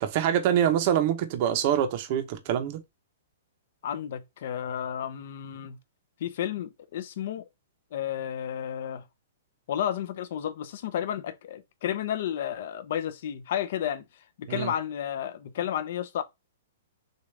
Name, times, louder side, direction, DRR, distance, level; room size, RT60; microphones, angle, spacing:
voice 1, 0.0-2.8 14.5-14.7, right 9 dB, 35° right, 0.8 m, -25 dB
voice 2, 3.8-5.8 6.2-7.4 7.9-9.0 9.7-14.0 14.4-16.2, left 10 dB, 45° left, 0.7 m, -32 dB
6.5 x 2.5 x 3.3 m
hypercardioid pair, 170°, 0 cm